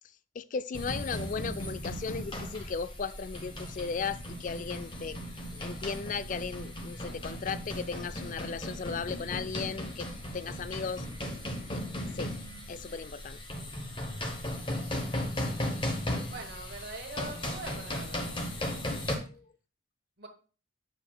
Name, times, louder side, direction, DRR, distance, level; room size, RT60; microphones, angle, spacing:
voice 1, 0.4-5.2 5.5-10.1 10.3-11.0 11.7-11.8 12.1-12.3 12.7-13.4 19.3-19.4, left 5 dB, 40° left, 0.3 m, -36 dB
sound 1, 0.7-19.2, left 1 dB, 25° left, 1.0 m, -36 dB
voice 2, 16.3-18.6 20.2-20.3, right 2 dB, 50° right, 1.3 m, -43 dB
7.6 x 7.0 x 2.3 m
head